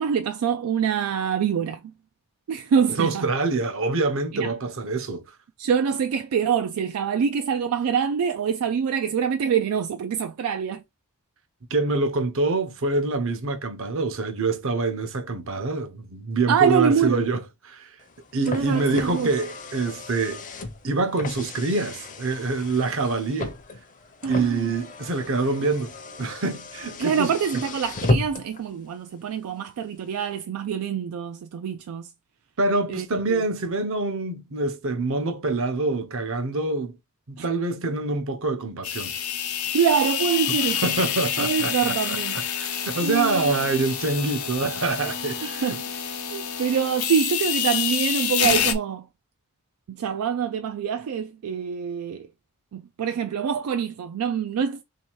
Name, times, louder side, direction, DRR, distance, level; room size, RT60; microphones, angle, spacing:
voice 1, 0.0-1.9 2.5-3.3 4.3-4.5 5.6-10.8 16.5-17.3 18.5-19.3 24.2-24.7 27.0-32.1 32.9-33.4 37.4-37.5 39.7-40.9 41.4-42.4 43.0-43.7 45.4-49.1 49.9-52.3 52.7-54.8, right 7 dB, 80° right, 0.3 m, -25 dB
voice 2, 3.0-5.2 11.7-17.4 17.7-17.9 18.3-20.4 20.8-23.6 24.3-27.3 32.6-37.0 37.3-39.1 40.8-45.6, right 3 dB, 65° right, 0.8 m, -26 dB
Car, 18.0-28.6, left 2 dB, 35° left, 0.6 m, -33 dB
sound 1, 38.8-48.7, left 8 dB, 85° left, 0.7 m, -28 dB
3.2 x 2.8 x 4.5 m
head